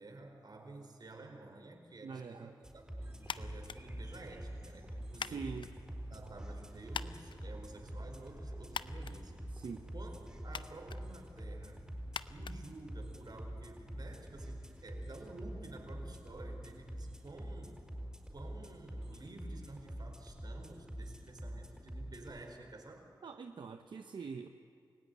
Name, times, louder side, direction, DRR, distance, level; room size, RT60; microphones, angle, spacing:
voice 1, 0.0-5.6 6.1-11.9 12.3-17.8 18.3-23.2, right 2 dB, 60° right, 4 dB, 4.6 m, -51 dB
voice 2, 2.0-2.5 5.2-5.7 9.5-9.9 23.2-24.5, right 5 dB, 80° right, 6 dB, 0.9 m, -44 dB
sound 1, 2.6-22.4, equal, 10° right, 5.3 m, -46 dB
sound 2, 3.0-10.4, right 2 dB, 35° right, 2.6 m, -57 dB
sound 3, 3.2-13.4, left 6 dB, 85° left, 0.6 m, -48 dB
28.5 x 16.5 x 9.6 m, 2.3 s
cardioid pair, 45°, 8 cm